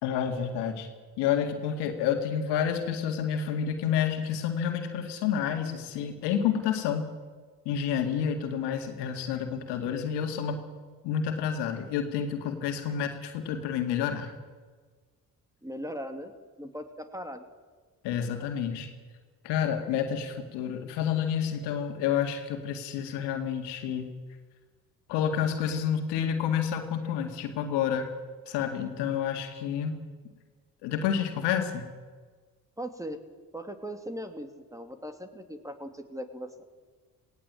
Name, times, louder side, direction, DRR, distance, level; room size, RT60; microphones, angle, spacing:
voice 1, 0.0-0.9 1.2-7.1 7.7-10.6 11.0-14.3 18.0-18.9 19.4-24.1 25.1-28.1 28.5-30.0 30.8-31.8, left 8 dB, 85° left, 5 dB, 2.2 m, -29 dB
voice 2, 15.6-16.3 16.6-17.5 32.8-33.2 33.5-36.6, equal, 10° right, 7 dB, 2.7 m, -39 dB
18.0 x 17.5 x 8.8 m, 1.4 s
supercardioid pair, 60°, 40 cm